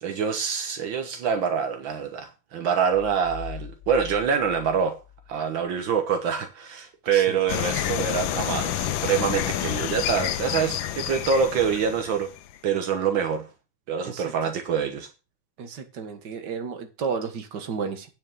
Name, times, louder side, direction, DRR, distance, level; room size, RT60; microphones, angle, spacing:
voice 1, 0.0-5.0 5.3-12.3 12.6-13.5 13.9-15.1, right 7 dB, 75° right, 2.0 m, -25 dB
sound 1, 2.9-5.8, left 9 dB, 45° left, 2.1 m, -42 dB
sound 2, 7.5-12.6, left 12 dB, 90° left, 1.5 m, -29 dB
voice 2, 15.6-18.1, right 5 dB, 60° right, 2.1 m, -32 dB
9.6 x 5.7 x 7.4 m
omnidirectional pair, 2.1 m